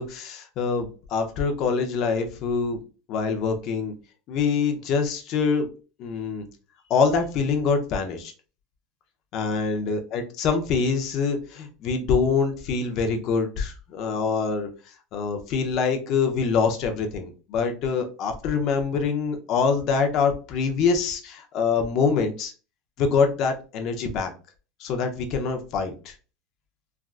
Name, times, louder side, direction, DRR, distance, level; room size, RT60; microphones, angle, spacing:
voice 1, 0.0-2.8 3.1-3.9 4.3-5.7 6.0-6.5 6.9-8.3 9.3-14.7 15.1-22.5 23.0-24.3 24.8-26.1, left 5 dB, 50° left, 5 dB, 0.6 m, -25 dB
3.4 x 2.4 x 2.4 m, 0.35 s
supercardioid pair, 140°, 0 cm